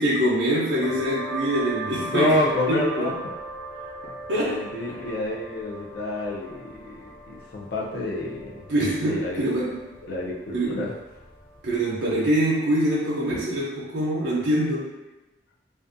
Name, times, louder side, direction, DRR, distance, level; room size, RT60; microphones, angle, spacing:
voice 1, 0.0-2.3 2.7-3.1 4.3-4.6 4.9-5.0 8.7-9.8 10.5-10.8 11.6-14.9, right 1 dB, 75° right, -6 dB, 0.5 m, -24 dB
sound 1, 0.8-12.1, right 2 dB, 10° left, 0.5 m, -39 dB
voice 2, 2.1-3.1 4.4-8.5 9.1-9.4 10.0-10.9, left 1 dB, 60° left, -4 dB, 0.4 m, -28 dB
2.5 x 2.2 x 2.5 m, 1.1 s
head